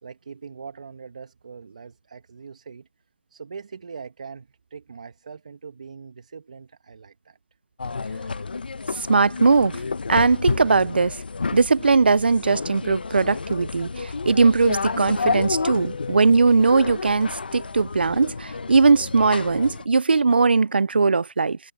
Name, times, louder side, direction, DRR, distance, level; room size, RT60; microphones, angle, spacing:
voice 1, 0.0-2.9 3.3-7.4, right 5 dB, 45° right, 2.1 m, -41 dB
sound 1, 7.8-19.9, left 4 dB, 65° left, 0.9 m, -30 dB
voice 2, 9.0-9.8 10.1-11.2 11.5-21.6, right 4 dB, 75° right, 0.5 m, -19 dB
sound 2, 14.5-17.4, left 6 dB, 35° left, 1.1 m, -43 dB
figure-of-eight pair, 170°, 6 cm